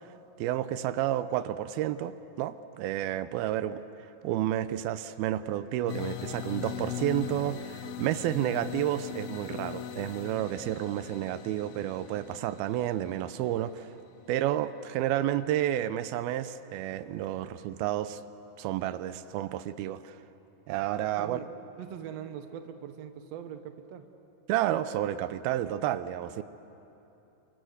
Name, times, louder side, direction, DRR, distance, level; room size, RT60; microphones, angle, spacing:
voice 1, 0.4-3.8 4.2-13.9 14.3-18.2 18.6-20.1 20.7-21.4 24.5-26.4, right 12 dB, 85° right, 13 dB, 2.6 m, -30 dB
sound 1, 5.9-14.7, left 10 dB, 80° left, 2.9 m, -40 dB
voice 2, 21.2-21.5 21.8-24.1, right 9 dB, 60° right, 7 dB, 2.0 m, -42 dB
29.0 x 25.5 x 8.0 m, 3.0 s
omnidirectional pair, 4.2 m